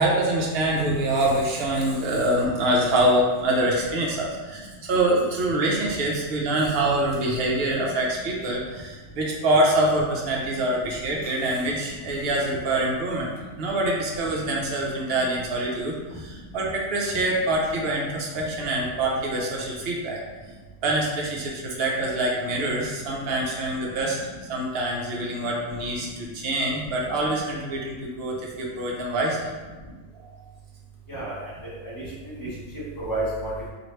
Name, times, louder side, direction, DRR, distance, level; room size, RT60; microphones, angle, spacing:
voice 1, 0.0-13.3 13.6-20.2 20.8-24.2 24.5-29.4, right 1 dB, 60° right, -2 dB, 0.8 m, -25 dB
voice 2, 0.7-2.0 2.3-3.1 3.3-3.5 3.8-4.3 4.6-4.7 6.1-6.8 7.1-7.9 8.3-8.4 10.5-11.2 11.7-12.4 13.1-13.8 14.1-14.6 14.9-15.2 16.1-16.5 17.2-17.4 17.7-17.8 18.3-18.5 21.7-22.1 23.0-23.1 23.8-24.7 25.2-25.3 25.9-26.5 26.8-27.4 29.6-29.9 31.1-33.7, right 1 dB, 15° left, -11 dB, 1.0 m, -38 dB
2.9 x 2.5 x 3.1 m, 1.3 s
omnidirectional pair, 1.4 m